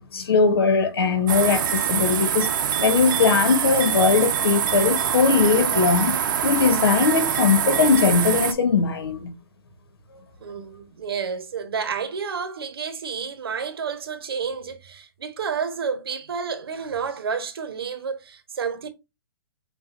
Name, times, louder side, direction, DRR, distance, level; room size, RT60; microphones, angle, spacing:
voice 1, 0.0-2.5 2.8-6.2 6.4-9.3, left 5 dB, 80° left, 1.6 m, -20 dB
sound 1, 1.3-8.5, right 8 dB, 60° right, 0.8 m, -24 dB
voice 2, 10.4-18.9, right 6 dB, 75° right, 1.2 m, -30 dB
6.1 x 2.6 x 2.5 m
hypercardioid pair, 140°, 12 cm